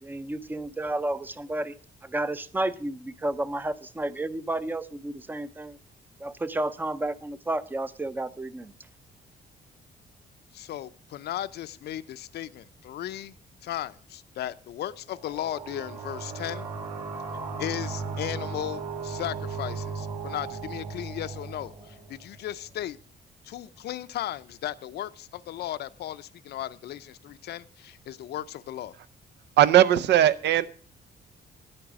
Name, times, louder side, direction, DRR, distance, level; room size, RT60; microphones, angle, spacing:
voice 1, 0.0-1.7 2.0-5.8 6.2-8.7, right 2 dB, 10° right, 16 dB, 0.5 m, -31 dB
voice 2, 10.5-13.3 13.6-16.7 17.6-23.0 23.4-29.0, left 12 dB, 70° left, 14 dB, 0.6 m, -36 dB
sound 1, 15.1-22.5, right 4 dB, 55° right, 3.6 m, -36 dB
voice 3, 29.6-30.7, right 11 dB, 85° right, 16 dB, 0.7 m, -18 dB
10.5 x 8.8 x 6.1 m, 0.43 s
cardioid pair, 160°, 17 cm